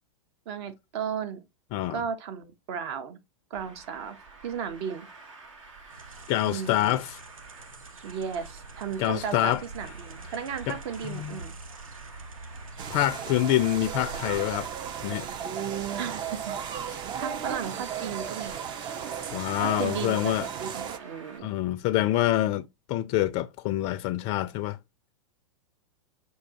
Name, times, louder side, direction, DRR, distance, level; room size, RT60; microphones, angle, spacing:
voice 1, 0.5-1.4 1.9-3.2 3.5-4.2 4.4-5.1 6.4-7.0 8.0-11.5 15.9-16.6 16.9-18.7 19.6-20.2 20.5-21.5, right 7 dB, 50° right, 0.9 m, -35 dB
voice 2, 1.7-2.0 6.3-7.2 9.0-9.6 10.7-10.8 11.0-11.4 12.9-14.7 15.0-15.3 19.3-20.5 21.4-22.6 22.9-24.8, left 14 dB, 35° left, 0.4 m, -26 dB
Traffic noise roadway noise, 3.5-21.4, right 4 dB, 70° right, 1.4 m, -49 dB
sound 1, 5.9-14.7, right 3 dB, 90° right, 0.7 m, -46 dB
sound 2, 12.8-21.0, right 8 dB, 25° right, 0.4 m, -35 dB
6.2 x 2.7 x 2.8 m
hypercardioid pair, 110°, 17 cm